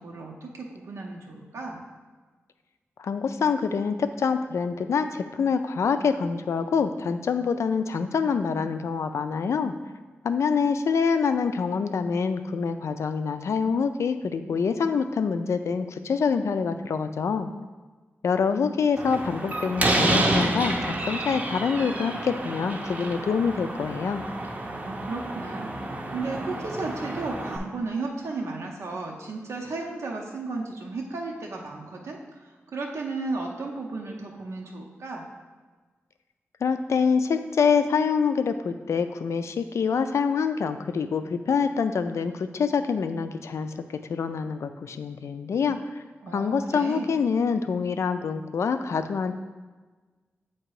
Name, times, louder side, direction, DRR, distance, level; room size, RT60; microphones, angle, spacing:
voice 1, 0.0-1.8 24.7-25.8 26.1-32.2 32.7-35.2 46.2-47.2, right 3 dB, 85° right, 0 dB, 0.7 m, -34 dB
voice 2, 3.0-9.7 10.2-17.5 18.2-24.2 36.6-45.8 46.3-49.4, left 5 dB, 85° left, 9 dB, 0.4 m, -26 dB
Slam, 19.0-27.6, right 1 dB, 30° right, 0.6 m, -29 dB
7.6 x 2.9 x 4.7 m, 1.3 s
wide cardioid pair, 140°, 5 cm